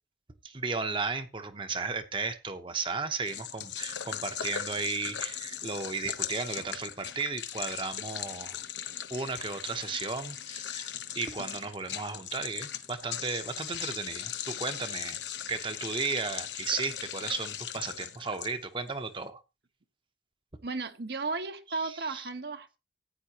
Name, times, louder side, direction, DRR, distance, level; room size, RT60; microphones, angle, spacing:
voice 1, 0.4-8.6 9.1-10.9 11.2-15.2 15.5-19.4 21.8-22.3, right 4 dB, 30° right, 0.9 m, -34 dB
sound 1, 3.3-18.9, left 10 dB, 80° left, 1.0 m, -39 dB
voice 2, 20.6-22.8, right 3 dB, 65° right, 1.1 m, -34 dB
15.0 x 9.1 x 2.9 m
head